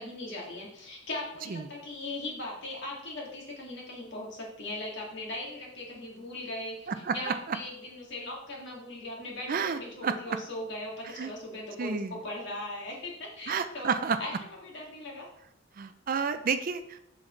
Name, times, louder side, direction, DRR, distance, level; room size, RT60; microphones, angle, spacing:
voice 1, 0.0-6.9 7.1-13.9 14.2-14.3 14.6-15.3, left 1 dB, 55° left, -2 dB, 2.2 m, -39 dB
voice 2, 6.9-7.6 9.5-10.4 11.1-11.3 11.8-12.2 13.5-14.2 15.8-17.0, right 5 dB, 40° right, 11 dB, 0.4 m, -31 dB
7.2 x 6.3 x 3.2 m, 0.76 s
head